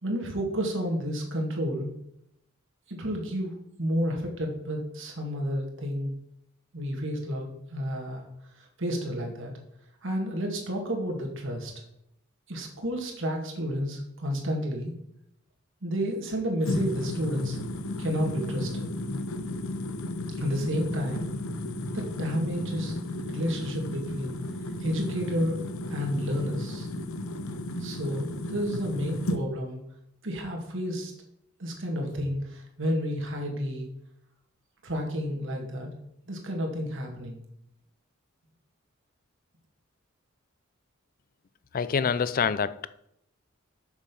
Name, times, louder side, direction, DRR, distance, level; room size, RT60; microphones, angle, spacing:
voice 1, 0.0-1.9 2.9-6.1 6.7-8.3 8.5-9.5 10.0-11.7 12.5-14.9 15.8-17.6 18.0-18.9 20.4-21.3 21.9-23.0 23.3-24.3 24.8-25.6 25.9-26.9 27.8-29.8 30.2-31.1 31.6-33.9 34.8-35.9 36.3-37.4, equal, 65° right, 2.1 m, -31 dB
sound 1, 16.6-29.4, left 1 dB, 90° left, 0.8 m, -34 dB
voice 2, 41.7-42.9, left 6 dB, 45° left, 0.4 m, -26 dB
7.0 x 6.5 x 5.4 m
head